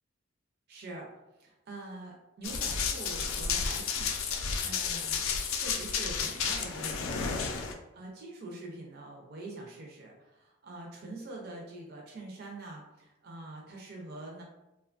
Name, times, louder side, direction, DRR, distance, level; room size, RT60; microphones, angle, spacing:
voice 1, 0.7-1.1 1.4-5.3 5.5-14.4, right 2 dB, 50° right, -1 dB, 0.5 m, -45 dB
Run, 2.4-7.7, left 6 dB, 75° left, 0.3 m, -32 dB
3.0 x 2.2 x 2.4 m, 0.96 s
head